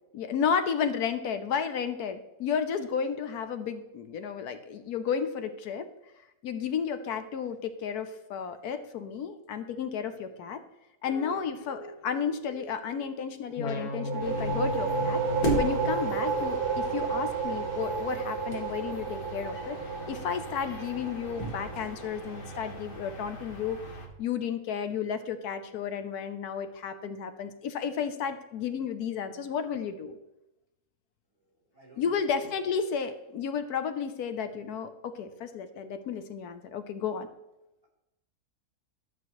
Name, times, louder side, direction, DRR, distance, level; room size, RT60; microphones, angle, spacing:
voice 1, 0.1-5.9 6.4-10.6 11.0-15.2 15.6-19.8 20.1-30.2 32.0-37.3, left 7 dB, 85° left, 10 dB, 1.2 m, -32 dB
voice 2, 10.0-10.4 11.1-11.6 31.4-32.7, right 2 dB, 20° right, -6 dB, 3.5 m, -55 dB
sound 1, 11.1-13.1 13.6-16.8, left 2 dB, 55° left, 1.2 m, -37 dB
sound 2, 13.8-23.2, right 6 dB, 75° right, 1.3 m, -32 dB
sound 3, 14.2-24.1, right 2 dB, 35° left, 1.4 m, -38 dB
12.5 x 7.8 x 3.1 m, 0.93 s
omnidirectional pair, 1.6 m